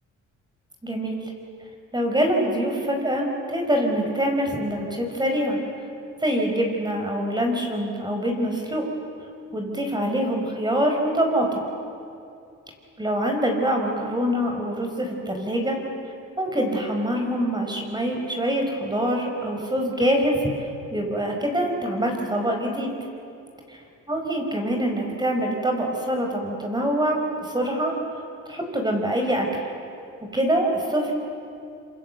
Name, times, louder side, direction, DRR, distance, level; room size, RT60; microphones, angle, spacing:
voice 1, 0.8-1.3 1.9-5.6 6.2-8.9 9.5-11.6 13.0-15.8 16.4-22.9 24.1-28.2 28.5-29.6 30.3-31.1, equal, 15° right, 2 dB, 5.2 m, -25 dB
27.0 x 25.0 x 8.0 m, 2.6 s
cardioid pair, 90°, 30 cm